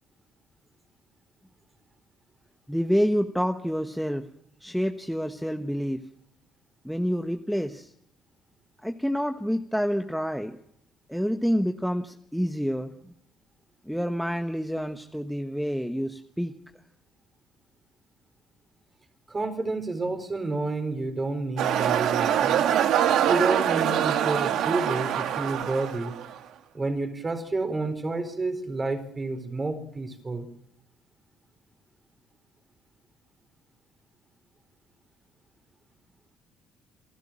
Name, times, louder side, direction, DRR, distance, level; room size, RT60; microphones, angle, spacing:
voice 1, 2.7-4.3 4.6-6.0 6.8-7.9 8.8-10.6 11.1-13.1 13.9-16.5, equal, ahead, 7 dB, 1.2 m, -28 dB
voice 2, 19.3-22.6 23.2-26.2 26.7-30.5, right 3 dB, 25° right, 7 dB, 4.4 m, -30 dB
sound 1, 21.6-26.4, right 10 dB, 70° right, 1.4 m, -24 dB
28.5 x 12.0 x 7.6 m, 0.72 s
supercardioid pair, 70°, 0 cm